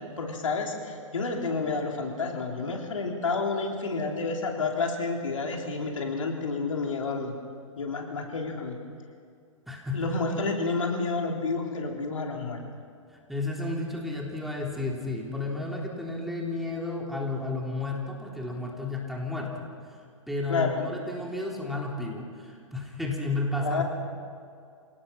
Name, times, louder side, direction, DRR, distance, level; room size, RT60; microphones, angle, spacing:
voice 1, 0.0-7.3 7.8-8.8 9.9-12.6 20.5-20.8 23.6-23.8, left 4 dB, 75° left, 1 dB, 3.5 m, -30 dB
voice 2, 9.7-10.1 13.3-19.7 20.3-23.8, left 2 dB, ahead, -2 dB, 3.8 m, -32 dB
27.0 x 18.5 x 5.8 m, 2.3 s
figure-of-eight pair, 110°, 17 cm